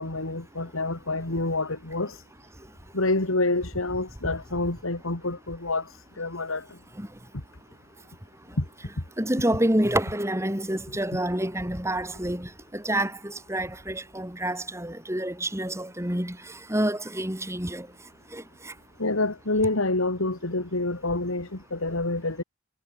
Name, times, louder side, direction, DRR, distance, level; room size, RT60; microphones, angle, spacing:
voice 1, 0.0-2.2 2.9-6.8 8.6-8.7 19.0-22.4, left 2 dB, 80° left, 2.6 m, -27 dB
voice 2, 9.2-16.4 16.7-17.9 18.3-18.4, right 1 dB, 15° right, 4.8 m, -28 dB
head